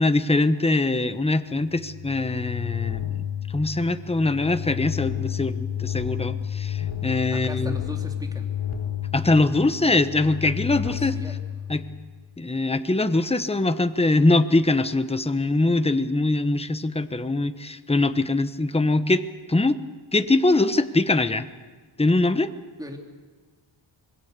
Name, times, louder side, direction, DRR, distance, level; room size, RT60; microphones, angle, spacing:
voice 1, 0.0-7.8 9.1-11.2 11.7-11.8 12.4-19.8 20.1-21.5 22.0-22.5, left 2 dB, 15° left, 11 dB, 1.1 m, -22 dB
sound 1, 1.6-12.2, left 10 dB, 80° left, 3.7 m, -31 dB
voice 2, 7.3-8.5 10.8-11.4 22.8-23.0, equal, 10° right, 2 dB, 3.3 m, -38 dB
26.0 x 21.5 x 6.8 m, 1.4 s
wide cardioid pair, 95°, 47 cm